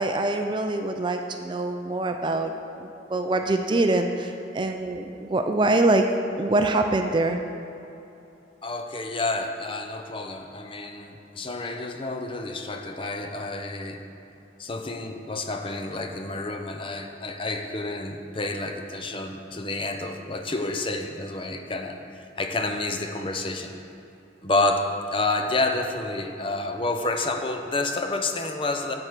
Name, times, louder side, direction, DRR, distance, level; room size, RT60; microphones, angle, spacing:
voice 1, 0.0-6.1 6.4-7.4, right 2 dB, 25° right, 5 dB, 0.4 m, -24 dB
voice 2, 8.6-14.0 14.6-23.7 24.4-28.9, left 2 dB, 25° left, 5 dB, 0.6 m, -29 dB
7.9 x 7.9 x 5.8 m, 3.0 s
head